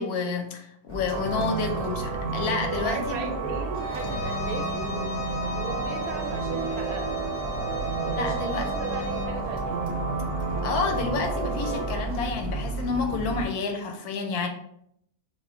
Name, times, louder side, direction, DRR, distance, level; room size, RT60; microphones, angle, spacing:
voice 1, 0.0-3.2 8.2-8.7 10.6-14.5, left 4 dB, 75° left, 4 dB, 1.0 m, -29 dB
sound 1, 0.9-13.5, right 2 dB, 40° right, 0.8 m, -35 dB
voice 2, 1.1-1.8 2.8-5.1 5.5-7.2 8.0-9.9, right 4 dB, 70° right, 3 dB, 1.0 m, -37 dB
sound 2, 1.1-12.0, right 4 dB, 90° right, 1.2 m, -31 dB
Bowed string instrument, 3.8-9.4, left 4 dB, 50° left, 0.7 m, -38 dB
5.3 x 2.2 x 2.4 m, 0.74 s
omnidirectional pair, 1.7 m